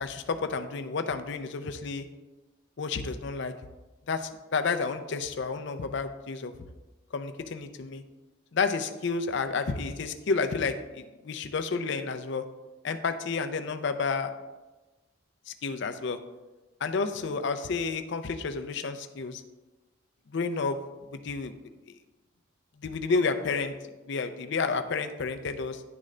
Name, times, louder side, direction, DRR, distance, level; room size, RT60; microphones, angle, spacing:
voice 1, 0.0-2.1 2.8-3.5 4.1-6.5 7.1-8.0 8.5-12.4 12.8-14.3 15.5-16.2 16.8-19.4 20.3-20.8 21.1-21.5 22.8-23.7 24.1-25.8, left 4 dB, 55° left, 9 dB, 0.5 m, -30 dB
10.5 x 3.8 x 3.2 m, 1.1 s
head